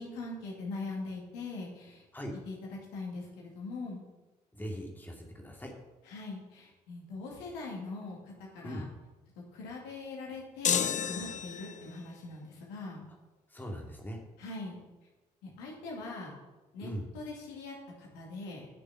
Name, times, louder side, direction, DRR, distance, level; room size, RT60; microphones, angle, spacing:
voice 1, 0.0-2.0 2.5-2.6 2.9-4.0 6.1-8.9 9.5-13.1 14.4-14.8 15.4-16.4 16.7-18.7, left 3 dB, 65° left, -2 dB, 2.4 m, -42 dB
voice 2, 4.5-5.7 8.6-8.8 13.5-14.2 16.8-17.1, equal, 10° left, 0 dB, 2.4 m, -40 dB
sound 1, 10.6-12.0, left 8 dB, 40° left, 0.7 m, -31 dB
11.0 x 6.8 x 5.7 m, 1.1 s
figure-of-eight pair, 40°, 19 cm